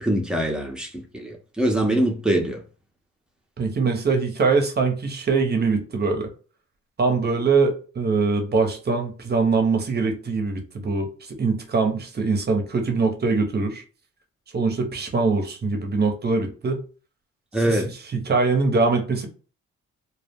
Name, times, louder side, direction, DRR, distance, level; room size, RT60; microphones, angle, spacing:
voice 1, 0.0-2.6 17.5-17.9, right 1 dB, 5° right, 0.7 m, -23 dB
voice 2, 3.6-6.3 7.0-13.8 14.5-16.8 17.7-17.8 18.1-19.3, right 4 dB, 35° right, 0.8 m, -23 dB
2.3 x 2.0 x 3.4 m
cardioid pair, 90°, 30 cm